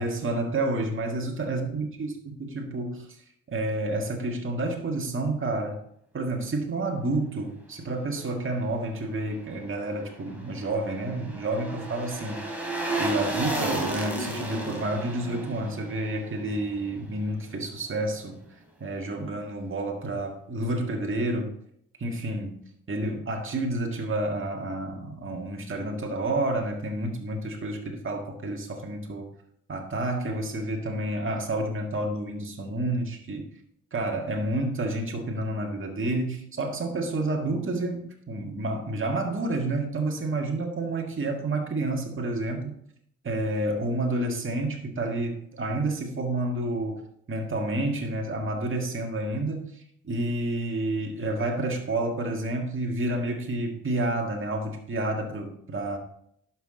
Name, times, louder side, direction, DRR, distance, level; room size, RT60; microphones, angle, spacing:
voice 1, 0.0-3.1 3.5-5.8 6.1-12.4 13.0-18.4 18.8-21.5 22.0-22.5 22.9-29.3 29.7-33.5 33.9-42.7 43.2-47.0 47.3-56.0, right 2 dB, 35° right, 2 dB, 1.8 m, -29 dB
sound 1, 10.1-17.3 17.6-17.7, right 2 dB, 5° right, 3.3 m, -33 dB
10.5 x 5.9 x 3.9 m, 0.70 s
supercardioid pair, 55°, 35 cm